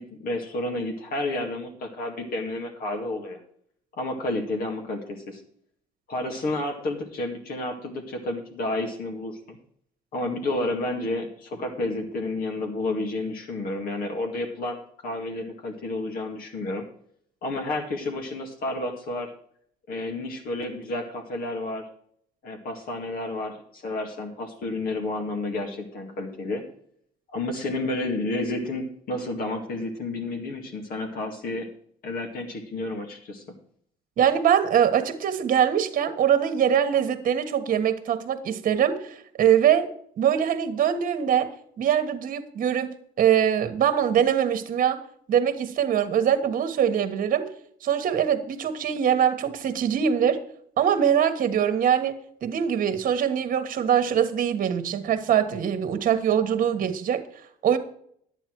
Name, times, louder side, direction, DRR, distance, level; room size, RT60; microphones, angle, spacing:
voice 1, 0.0-3.4 4.0-5.4 6.1-9.6 10.1-14.8 15.0-16.8 17.4-19.3 19.9-21.9 22.4-26.6 27.3-31.7 32.0-33.4, left 2 dB, 60° left, 2 dB, 2.1 m, -30 dB
voice 2, 34.2-39.9 40.2-41.5 41.8-45.0 45.3-47.5 47.8-50.4 50.8-57.3 57.6-57.8, right 9 dB, 55° right, 9 dB, 1.5 m, -23 dB
10.5 x 8.9 x 4.6 m, 0.65 s
cardioid pair, 110°, 17 cm